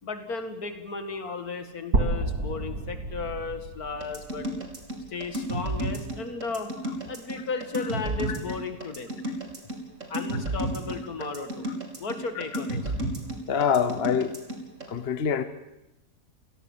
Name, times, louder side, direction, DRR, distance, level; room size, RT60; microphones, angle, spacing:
voice 1, 0.0-4.5 5.1-6.7 7.1-9.1 10.1-11.7 12.0-12.9, left 4 dB, 70° left, 2.6 m, -34 dB
sound 1, 1.9-5.9, right 2 dB, 75° right, 2.5 m, -31 dB
sound 2, 4.0-14.9, right 1 dB, 55° right, 4.0 m, -32 dB
voice 2, 13.5-14.4 14.9-15.4, left 7 dB, 45° left, 1.2 m, -25 dB
29.5 x 17.0 x 7.4 m
omnidirectional pair, 1.6 m